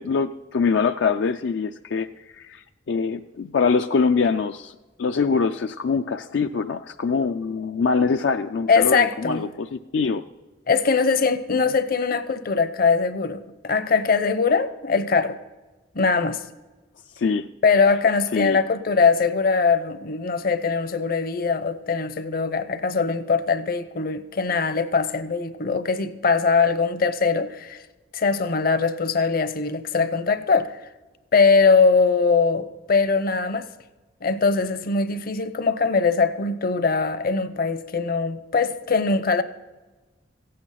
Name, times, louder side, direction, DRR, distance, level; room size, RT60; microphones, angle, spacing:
voice 1, 0.0-2.1 2.3-10.2 17.1-17.5 18.3-18.6, left 5 dB, 80° left, 0.4 m, -24 dB
voice 2, 8.7-9.4 10.7-15.4 15.9-16.4 17.6-27.8 28.1-30.8 31.3-33.7 34.2-39.4, left 4 dB, 55° left, 0.8 m, -21 dB
16.0 x 8.6 x 5.7 m
head